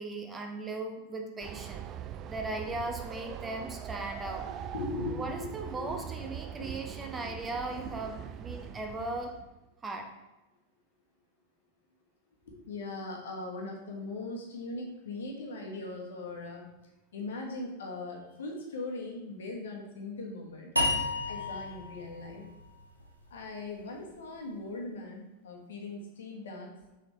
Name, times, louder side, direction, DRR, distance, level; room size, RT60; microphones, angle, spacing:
voice 1, 0.0-1.8 2.3-4.5 5.1-9.3 9.8-10.1, right 2 dB, 15° right, 3 dB, 0.8 m, -38 dB
Train, 1.4-9.6, right 9 dB, 35° right, 0.3 m, -42 dB
voice 2, 4.4-5.5 5.7-6.1 6.6-6.7 12.4-16.7 17.1-20.7 21.2-22.4 23.3-26.7, left 2 dB, 65° left, 0 dB, 1.4 m, -40 dB
sound 1, 20.8-23.9, left 2 dB, 85° right, 1.0 m, -33 dB
6.3 x 5.8 x 3.2 m, 1.0 s
figure-of-eight pair, 90°, 0 cm